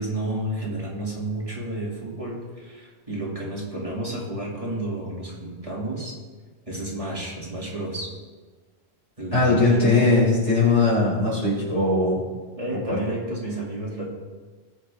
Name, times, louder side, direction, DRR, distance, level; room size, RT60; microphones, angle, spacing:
voice 1, 0.0-6.2 6.7-8.1 9.2-10.1 12.6-14.1, right 1 dB, 30° right, -5 dB, 2.5 m, -31 dB
voice 2, 9.3-12.2 12.9-13.0, left 3 dB, 85° left, -5 dB, 4.3 m, -20 dB
19.0 x 6.6 x 3.5 m, 1.4 s
omnidirectional pair, 1.2 m